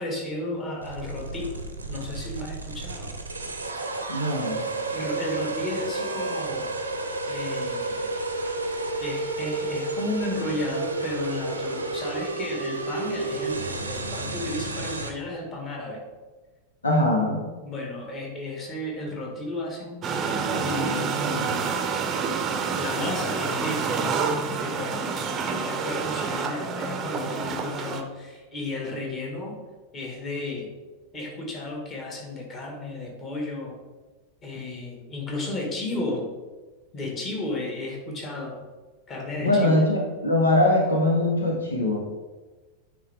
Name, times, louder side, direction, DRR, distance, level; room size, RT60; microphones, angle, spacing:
voice 1, 0.0-1.5 1.9-3.1 4.9-6.7 7.3-8.1 9.0-16.1 17.6-20.1 20.6-21.8 22.8-25.0 25.5-29.6 29.9-30.7 31.1-33.8 34.4-36.3 36.9-38.6 39.1-39.8, left 2 dB, 25° left, 0 dB, 1.7 m, -33 dB
sound 1, 0.8-15.1, right 2 dB, 80° right, 0.7 m, -31 dB
voice 2, 4.1-4.7 16.8-17.4 39.4-42.1, left 1 dB, 75° left, 0 dB, 0.9 m, -22 dB
sound 2, 20.0-28.0, right 5 dB, 25° right, 0.7 m, -28 dB
9.3 x 3.5 x 3.5 m, 1.3 s
figure-of-eight pair, 90°, 0 cm